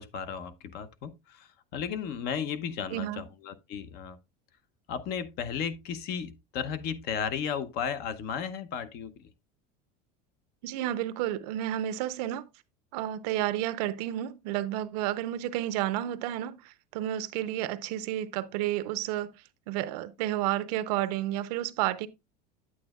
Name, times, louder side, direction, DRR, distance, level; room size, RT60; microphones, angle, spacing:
voice 1, 0.0-4.2 4.9-9.2, left 7 dB, 50° left, 0.8 m, -34 dB
voice 2, 2.9-3.2 10.6-12.5 12.9-19.3 19.7-22.1, right 13 dB, 75° right, 0.7 m, -31 dB
8.7 x 8.6 x 2.3 m
supercardioid pair, 135°, 21 cm